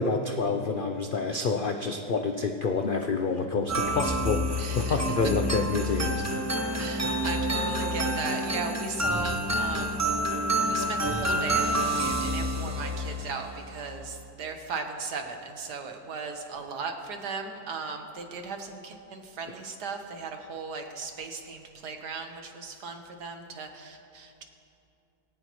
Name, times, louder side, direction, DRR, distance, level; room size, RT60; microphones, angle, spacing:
voice 1, 0.0-6.9, left 4 dB, 70° left, 5 dB, 0.5 m, -28 dB
sound 1, 3.7-13.4, right 1 dB, 15° right, 0.8 m, -28 dB
voice 2, 4.6-5.3 5.9-6.4 6.8-10.0 10.6-24.4, right 4 dB, 75° right, 4 dB, 1.8 m, -37 dB
20.0 x 17.5 x 3.1 m, 2.6 s
omnidirectional pair, 1.8 m